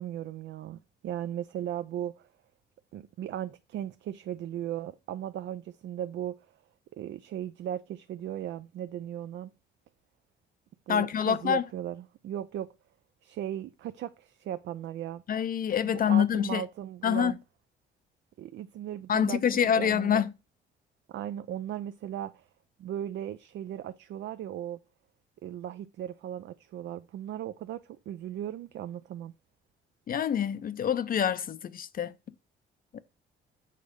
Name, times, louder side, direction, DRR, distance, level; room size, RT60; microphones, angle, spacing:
voice 1, 0.0-2.3 2.9-6.4 7.0-9.5 10.9-12.7 13.2-15.2 15.8-17.4 18.4-20.3 21.1-22.5 22.8-24.8 25.4-29.3, right 11 dB, 65° right, 0.5 m, -37 dB
voice 2, 10.9-11.6 15.3-16.6 17.0-17.3 19.1-20.3 30.1-32.1 32.9-33.0, left 8 dB, 45° left, 0.5 m, -26 dB
6.6 x 4.1 x 5.1 m
cardioid pair, 90°, 20 cm